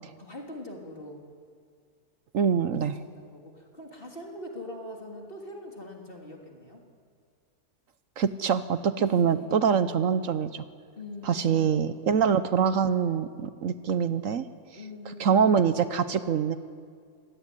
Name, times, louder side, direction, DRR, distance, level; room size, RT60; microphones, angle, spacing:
voice 1, 0.2-1.2 2.7-6.8 9.0-9.6 11.0-11.7 14.7-15.5 15.8-16.1, left 1 dB, 35° left, 1 dB, 3.3 m, -42 dB
voice 2, 2.3-2.9 8.2-10.6 11.3-14.4 15.2-16.6, right 7 dB, 65° right, 12 dB, 1.1 m, -24 dB
25.5 x 17.0 x 9.9 m, 2.1 s
omnidirectional pair, 1.6 m